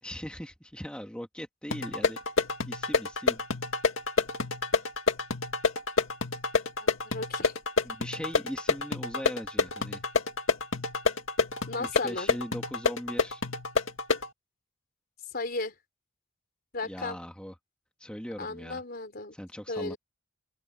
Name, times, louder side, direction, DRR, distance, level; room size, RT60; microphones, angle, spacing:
voice 1, 0.0-2.2 2.6-3.4 7.8-10.0 11.8-13.4 16.8-17.5 18.0-18.8 19.3-20.0, equal, 5° left, 2.5 m, -40 dB
sound 1, 1.7-14.3, left 3 dB, 80° left, 2.1 m, -29 dB
voice 2, 6.8-7.5 11.7-12.3 15.3-15.7 16.7-17.2 18.4-19.4 19.7-20.0, left 3 dB, 50° left, 4.1 m, -35 dB
open air
head